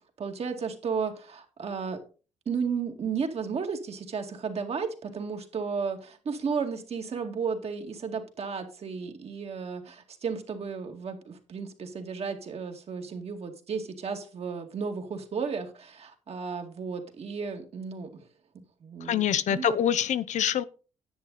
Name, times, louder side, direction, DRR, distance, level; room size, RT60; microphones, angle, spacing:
voice 1, 0.2-2.0 2.5-18.1 18.5-19.2 19.5-19.8, right 5 dB, 50° right, 2.2 m, -33 dB
voice 2, 19.0-20.6, left 9 dB, 65° left, 0.7 m, -25 dB
10.0 x 8.0 x 4.1 m
cardioid pair, 85°, 13 cm